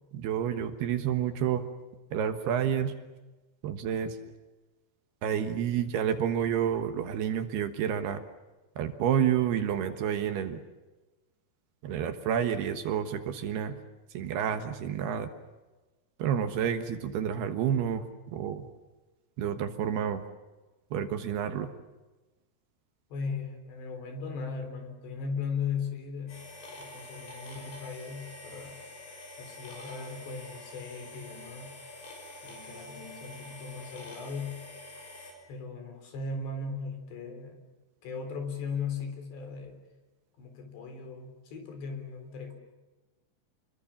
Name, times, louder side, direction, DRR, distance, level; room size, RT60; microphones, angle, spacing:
voice 1, 0.1-1.6 2.1-2.9 3.6-4.2 5.2-8.2 8.8-10.6 11.8-13.8 14.1-15.3 16.2-18.1 18.3-18.7 19.4-20.2 20.9-21.7, right 9 dB, 70° right, 8 dB, 3.1 m, -29 dB
voice 2, 23.1-28.8 29.4-31.8 32.4-34.7 35.5-37.7 38.0-39.8 40.4-42.5, left 5 dB, 70° left, 6 dB, 5.9 m, -38 dB
sound 1, 26.3-35.3, left 2 dB, 85° left, 8.8 m, -46 dB
28.5 x 22.0 x 7.2 m, 1.1 s
omnidirectional pair, 5.3 m